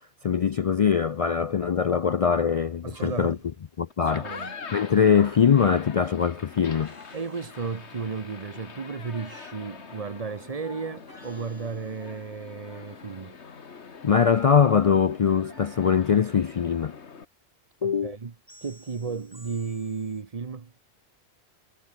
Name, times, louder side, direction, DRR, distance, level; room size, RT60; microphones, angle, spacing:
voice 1, 0.2-3.4 3.8-6.9 14.0-17.0 17.8-18.1, left 7 dB, 55° left, 0.4 m, -22 dB
voice 2, 2.8-3.4 4.0-4.5 7.1-13.4 17.8-18.3 18.6-20.7, right 5 dB, 35° right, 1.0 m, -34 dB
sound 1, 2.9-3.5 6.7-8.4 11.1-12.5 15.5-17.0 18.5-20.2, right 1 dB, 20° right, 5.2 m, -55 dB
sound 2, 3.9-17.3, left 5 dB, 80° left, 1.9 m, -43 dB
omnidirectional pair, 1.1 m